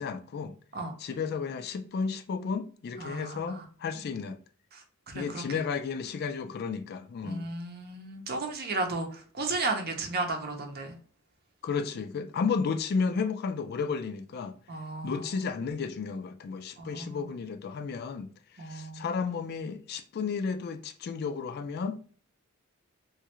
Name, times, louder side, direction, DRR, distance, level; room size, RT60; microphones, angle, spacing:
voice 1, 0.0-0.5 1.0-4.4 5.1-7.5 11.6-14.6 15.0-18.3 18.6-22.2, left 5 dB, 50° left, 0.3 m, -33 dB
voice 2, 3.0-3.6 4.7-5.4 7.2-10.9 14.7-15.4 16.8-17.3 18.6-19.1, right 3 dB, 50° right, 0.7 m, -34 dB
3.1 x 2.4 x 2.9 m
head